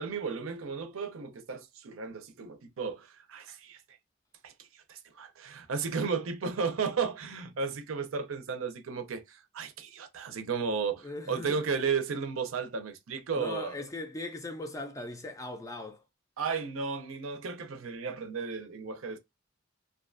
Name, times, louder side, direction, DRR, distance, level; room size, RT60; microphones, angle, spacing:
voice 1, 0.0-3.8 4.4-13.8 16.4-19.2, right 5 dB, 80° right, 0.5 m, -34 dB
voice 2, 11.0-11.6 13.4-16.0, left 2 dB, 15° left, 0.3 m, -39 dB
2.5 x 2.3 x 2.4 m
head